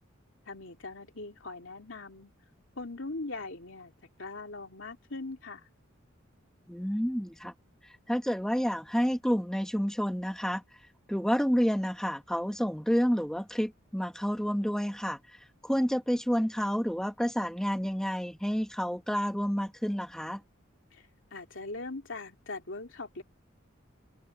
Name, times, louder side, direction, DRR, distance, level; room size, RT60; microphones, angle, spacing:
voice 1, 0.5-2.3 2.8-3.9 4.2-5.7 20.9-23.2, left 3 dB, 65° left, 2.8 m, -41 dB
voice 2, 6.7-7.5 8.1-10.6 11.1-15.2 15.6-20.4, equal, 5° left, 1.7 m, -29 dB
open air
head